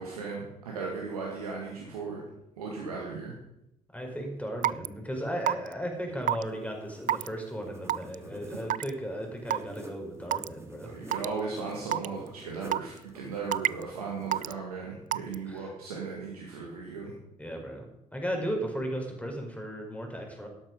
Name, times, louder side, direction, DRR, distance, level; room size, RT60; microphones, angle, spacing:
voice 1, 0.0-2.2 2.6-3.4 10.8-17.1, right 4 dB, 85° right, -2 dB, 1.8 m, -37 dB
voice 2, 3.9-10.9 15.5-15.7 17.4-17.9 18.1-20.5, equal, 5° left, 2 dB, 4.7 m, -35 dB
Raindrop / Water tap faucet / Drip, 4.6-4.9 5.5-5.7 6.3-6.4 7.1-7.3 7.9-8.2 8.7-8.9 9.5-9.6 10.3-10.5 11.1-11.3 11.9-12.1 12.7-13.0 13.5-13.8 14.3-14.5 15.1-15.4, right 11 dB, 45° right, 0.5 m, -26 dB
sound 1, 6.4-14.4, right 1 dB, 15° right, 3.4 m, -50 dB
12.5 x 11.5 x 5.2 m, 0.87 s
figure-of-eight pair, 45°, 19 cm